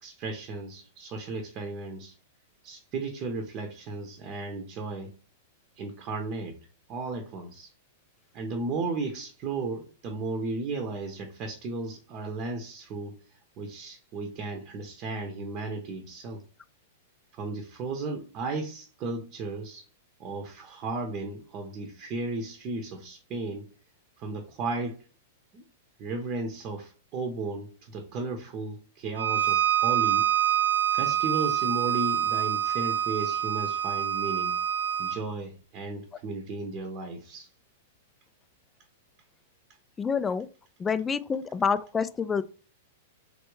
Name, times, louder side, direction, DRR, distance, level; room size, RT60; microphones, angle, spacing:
voice 1, 0.0-2.1 2.6-5.1 5.8-6.6 6.9-7.7 8.3-13.2 13.6-16.4 17.3-19.9 20.2-23.7 24.2-25.0 25.5-25.7 26.0-30.3 30.9-34.6 35.0-37.5, right 3 dB, 40° right, 0.8 m, -35 dB
Bowed string instrument, 29.2-35.2, right 10 dB, 85° right, 0.8 m, -26 dB
voice 2, 40.0-40.5 40.8-42.4, left 6 dB, 15° left, 0.4 m, -27 dB
4.2 x 3.4 x 3.1 m
figure-of-eight pair, 100°, 0 cm